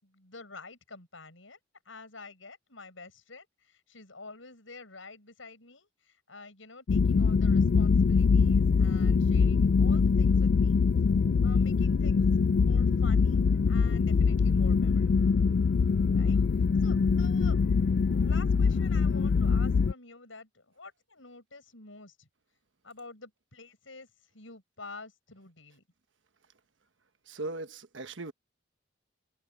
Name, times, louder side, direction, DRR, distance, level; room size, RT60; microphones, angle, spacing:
voice 1, 0.0-1.6 1.9-10.8 11.4-12.3 12.6-15.3 16.1-16.4 16.8-17.6 18.2-22.3 22.8-24.1 24.3-25.8, left 3 dB, 85° left, 6.8 m, -49 dB
sound 1, 6.9-19.9, left 5 dB, 60° left, 0.3 m, -23 dB
voice 2, 27.3-28.3, right 2 dB, 70° right, 1.2 m, -38 dB
head